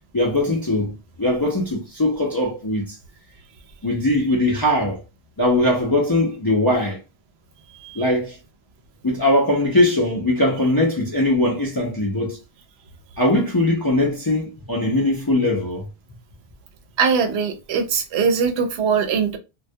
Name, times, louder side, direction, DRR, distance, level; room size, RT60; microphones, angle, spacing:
voice 1, 0.1-3.0 3.8-5.0 5.4-7.0 8.0-8.4 9.0-12.4 13.2-15.9, left 1 dB, 40° left, 0.3 m, -20 dB
voice 2, 17.0-19.4, right 6 dB, 80° right, 0.8 m, -21 dB
2.2 x 2.1 x 2.6 m
omnidirectional pair, 1.1 m